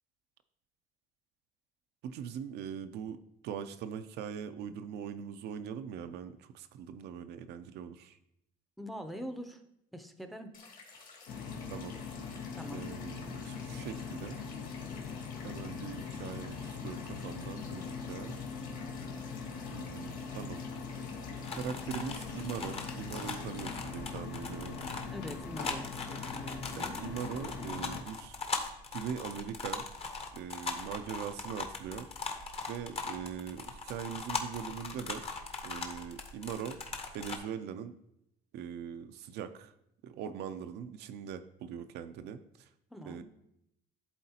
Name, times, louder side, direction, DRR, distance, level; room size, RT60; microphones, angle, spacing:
voice 1, 2.0-3.2 3.4-8.2 11.7-11.9 12.7-14.4 15.4-18.4 19.7-20.6 21.5-24.8 26.8-28.4 28.9-29.9 30.3-32.1 32.7-35.2 35.6-36.8 37.1-37.9 38.5-39.7 40.0-42.7 43.1-43.2, right 8 dB, 80° right, 9 dB, 0.5 m, -41 dB
voice 2, 8.8-9.6 9.9-10.5 12.5-12.8 25.1-27.0 42.9-43.2, equal, ahead, 7 dB, 0.6 m, -43 dB
sound 1, 10.5-23.6, left 4 dB, 55° left, 2.1 m, -54 dB
sound 2, 11.3-28.0, left 5 dB, 85° left, 0.9 m, -41 dB
sound 3, 21.4-37.4, left 4 dB, 35° left, 0.9 m, -40 dB
11.5 x 3.9 x 2.8 m, 0.79 s
cardioid pair, 110°, 17 cm